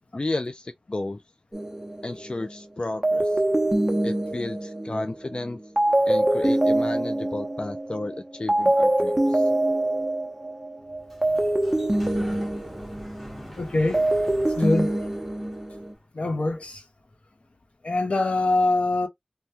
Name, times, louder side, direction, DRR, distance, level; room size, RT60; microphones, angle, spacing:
voice 1, 0.1-1.2 2.0-3.4 4.0-5.6 6.1-9.5, left 2 dB, 50° left, 0.4 m, -32 dB
sound 1, 1.5-2.5 3.0-8.2 8.5-13.4 13.8-15.9, right 1 dB, 20° right, 0.7 m, -24 dB
Sliding door, 10.8-16.0, equal, 10° left, 1.0 m, -43 dB
voice 2, 13.6-14.1 14.6-14.9 16.1-16.8 17.8-19.1, left 2 dB, 80° left, 0.7 m, -23 dB
3.4 x 2.2 x 2.7 m
wide cardioid pair, 55°, 2 cm